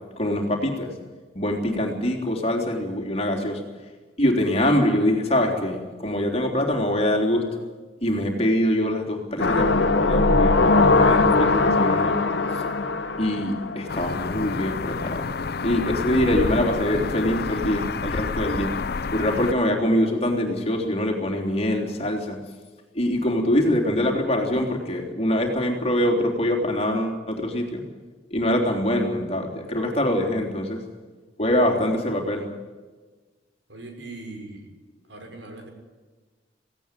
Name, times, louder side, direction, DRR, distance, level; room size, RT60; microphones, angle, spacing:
voice 1, 0.2-0.9 1.3-3.6 4.2-7.5 8.0-12.3 12.5-12.6 13.2-15.3 15.6-18.7 19.1-22.4 23.0-27.8 28.3-30.8 31.4-32.5, left 1 dB, 35° left, 2 dB, 3.6 m, -24 dB
sound 1, 9.4-14.3 14.6-14.7, left 3 dB, 90° left, 1.8 m, -20 dB
sound 2, 13.9-19.5, left 4 dB, 60° left, 0.7 m, -29 dB
voice 2, 33.7-34.7 35.1-35.7, right 2 dB, 85° right, 3 dB, 6.1 m, -40 dB
17.5 x 17.5 x 9.2 m, 1.3 s
head